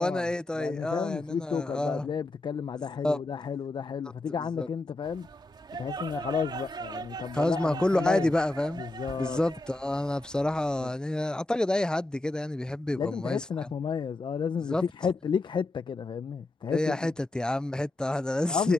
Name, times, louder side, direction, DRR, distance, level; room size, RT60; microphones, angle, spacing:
voice 1, 0.0-2.1 3.0-3.2 4.4-4.7 7.3-8.8 9.2-13.7 14.7-14.8 16.7-18.7, left 1 dB, 10° left, 0.7 m, -28 dB
voice 2, 0.6-5.3 5.8-8.3 8.8-9.4 10.8-10.9 12.9-17.1 18.5-18.7, left 7 dB, 50° left, 1.0 m, -32 dB
sound 1, 5.0-10.9, right 5 dB, 45° right, 2.6 m, -40 dB
supercardioid pair, 60°, 10 cm